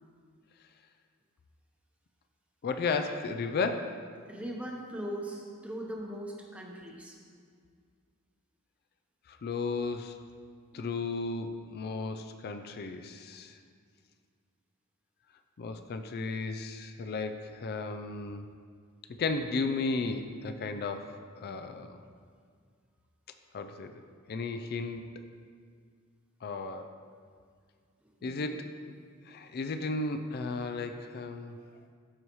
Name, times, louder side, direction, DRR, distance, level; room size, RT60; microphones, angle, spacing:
voice 1, 2.6-4.0 9.3-10.2 10.7-13.6 15.6-18.5 19.2-22.0 23.5-24.0 24.3-25.0 26.4-26.9 28.2-28.7 29.3-31.6, left 4 dB, 45° left, 8 dB, 0.4 m, -34 dB
voice 2, 4.3-7.2 21.4-21.6 28.0-28.7, right 1 dB, 5° right, -1 dB, 0.9 m, -40 dB
13.5 x 4.8 x 3.0 m, 2.1 s
head